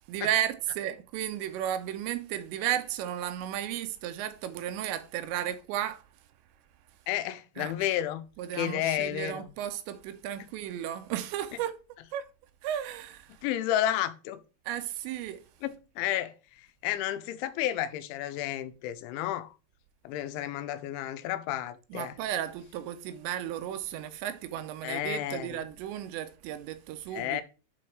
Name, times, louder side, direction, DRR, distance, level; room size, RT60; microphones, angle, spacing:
voice 1, 0.1-6.0 7.6-7.9 8.4-11.8 12.1-12.3 12.6-13.4 14.7-15.4 21.9-27.4, right 11 dB, 85° right, 2.8 m, -34 dB
voice 2, 7.1-8.2 8.5-9.5 13.4-14.4 15.6-19.5 20.0-22.2 24.8-25.6 27.1-27.4, left 12 dB, 85° left, 3.1 m, -31 dB
7.8 x 4.4 x 4.6 m
omnidirectional pair, 5.3 m